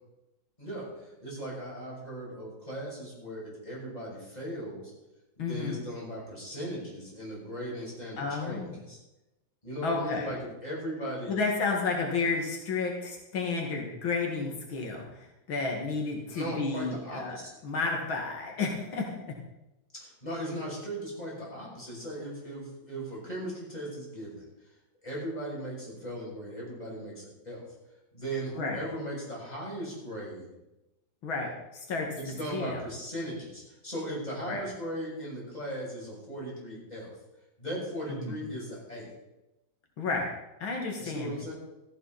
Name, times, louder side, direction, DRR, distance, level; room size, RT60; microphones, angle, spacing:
voice 1, 0.6-4.9 5.4-9.0 9.6-11.4 16.3-17.5 19.9-24.5 25.0-27.6 28.1-30.5 32.1-37.1 37.6-39.1 41.0-41.5, equal, 20° left, -5 dB, 7.2 m, -38 dB
voice 2, 5.4-5.8 8.2-8.8 9.8-10.3 11.3-17.4 17.6-19.1 28.6-28.8 31.2-32.1 32.5-32.8 34.5-34.6 38.1-38.4 40.0-40.3 40.6-41.3, left 4 dB, 85° left, 1 dB, 2.8 m, -31 dB
16.5 x 14.5 x 4.2 m, 0.95 s
omnidirectional pair, 2.1 m